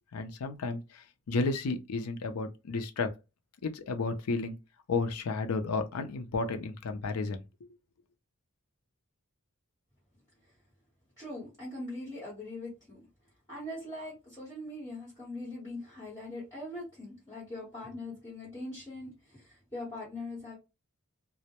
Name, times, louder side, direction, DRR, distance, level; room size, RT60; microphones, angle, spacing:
voice 1, 0.1-3.1 3.6-4.6 4.9-7.7, left 3 dB, 80° left, 0.5 m, -32 dB
voice 2, 11.2-13.0 13.5-20.6, left 1 dB, 15° left, 1.1 m, -41 dB
2.1 x 2.1 x 2.8 m
head